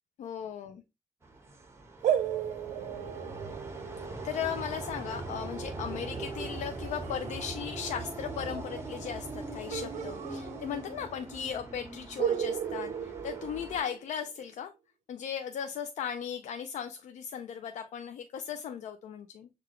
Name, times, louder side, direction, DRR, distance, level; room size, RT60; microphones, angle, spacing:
voice 1, 0.2-0.8 3.9-14.7 15.1-19.5, left 8 dB, 85° left, 0.4 m, -37 dB
sound 1, 1.2-13.8, right 2 dB, 20° right, 1.0 m, -41 dB
sound 2, 2.0-7.5 9.7-11.2 11.4-11.5 12.2-14.4, right 9 dB, 90° right, 0.5 m, -36 dB
6.7 x 2.4 x 3.0 m
cardioid pair, 125°, 12 cm